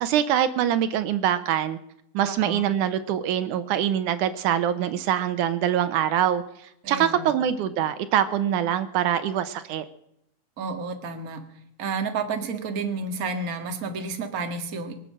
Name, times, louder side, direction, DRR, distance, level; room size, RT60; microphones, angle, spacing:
voice 1, 0.0-1.8 2.1-6.4 6.9-9.9, right 10 dB, 80° right, 12 dB, 2.3 m, -24 dB
voice 2, 2.2-2.7 6.8-7.3 10.6-11.4 11.8-14.9, right 4 dB, 35° right, 5 dB, 1.7 m, -31 dB
24.0 x 8.0 x 7.5 m, 0.75 s
omnidirectional pair, 3.6 m